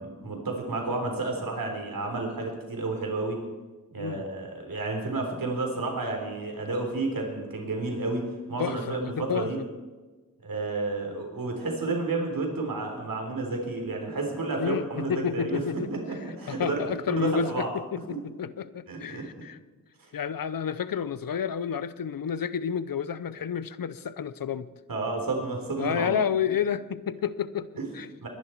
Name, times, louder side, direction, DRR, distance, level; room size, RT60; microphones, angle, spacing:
voice 1, 0.0-3.4 3.9-8.2 8.5-9.6 10.4-16.8 17.3-17.7 18.1-18.2 18.9-19.2 24.9-26.2 27.8-27.9 28.2-28.3, right 3 dB, 85° right, 1 dB, 3.7 m, -31 dB
voice 2, 8.6-9.5 14.6-19.6 20.1-24.7 25.8-27.7 27.9-28.1, left 7 dB, 90° left, 16 dB, 0.7 m, -30 dB
22.0 x 11.0 x 4.6 m, 1.3 s
wide cardioid pair, 65°, 33 cm